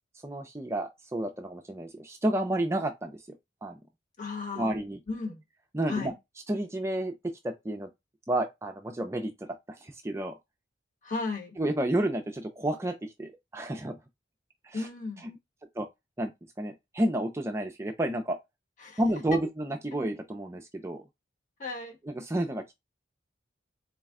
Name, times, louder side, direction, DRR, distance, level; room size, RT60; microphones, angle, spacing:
voice 1, 0.2-3.4 3.6-3.8 4.5-5.0 5.7-6.1 6.5-7.9 8.3-10.3 11.6-14.0 14.6-14.9 15.2-15.4 15.8-15.9 16.2-16.3 16.6-18.4 19.0-21.0 22.1-22.7, right 1 dB, 15° right, 0.4 m, -31 dB
voice 2, 4.2-4.7 5.1-5.4 5.9-6.1 11.0-11.6 14.7-15.2 18.8-19.0 21.6-22.0, left 3 dB, 40° left, 1.1 m, -34 dB
4.0 x 2.2 x 3.5 m
head